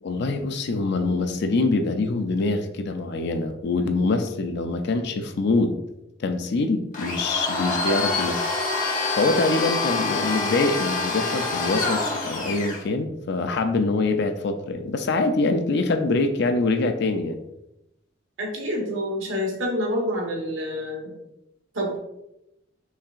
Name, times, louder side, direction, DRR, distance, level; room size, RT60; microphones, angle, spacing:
voice 1, 0.0-5.7 6.2-8.5 9.2-17.4, left 3 dB, 60° left, 7 dB, 0.4 m, -24 dB
Domestic sounds home sounds, 6.9-12.8, left 3 dB, 40° left, 1.0 m, -26 dB
voice 2, 18.4-21.1 21.7-22.0, equal, 80° right, -1 dB, 1.3 m, -27 dB
5.7 x 3.5 x 2.4 m, 0.86 s
head